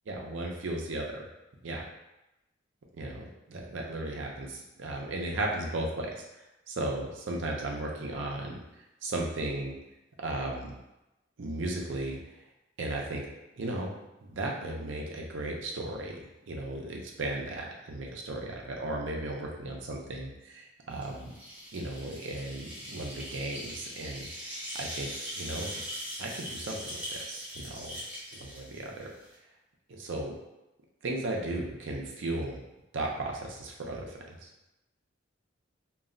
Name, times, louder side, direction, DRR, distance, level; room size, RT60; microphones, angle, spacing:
voice 1, 0.1-1.2 1.6-1.8 3.0-6.2 6.7-8.6 9.0-9.7 10.2-10.8 11.4-12.2 12.8-13.3 13.6-13.9 14.2-21.3 21.7-24.3 24.8-25.8 26.2-28.0 28.4-29.1 29.9-30.3 31.0-32.6 32.9-34.5, right 2 dB, 75° right, 0 dB, 0.5 m, -35 dB
sound 1, 20.9-29.3, equal, 10° right, 0.6 m, -41 dB
2.3 x 2.1 x 3.6 m, 0.95 s
head